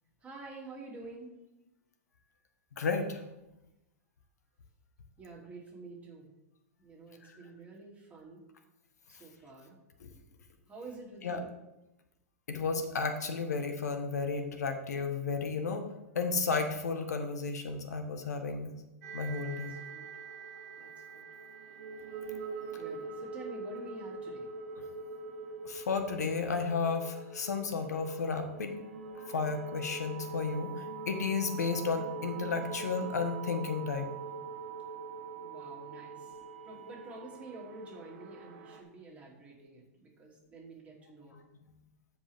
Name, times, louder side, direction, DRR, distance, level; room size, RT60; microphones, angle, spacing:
voice 1, 0.2-1.3 5.2-6.3 6.8-8.4 9.1-9.8 10.7-11.5 19.4-20.1 20.8-21.2 22.8-24.5 35.4-36.4 36.6-41.4, right 2 dB, 15° right, -3 dB, 2.7 m, -49 dB
voice 2, 2.8-3.2 10.0-10.1 11.2-11.4 12.5-15.8 16.1-18.7 19.1-19.7 25.6-28.7 29.2-30.7 31.1-34.1, left 4 dB, 90° left, 6 dB, 1.2 m, -33 dB
sound 1, 19.0-38.8, right 4 dB, 65° right, 1.3 m, -43 dB
14.0 x 5.1 x 3.5 m, 0.95 s
hypercardioid pair, 130°, 9 cm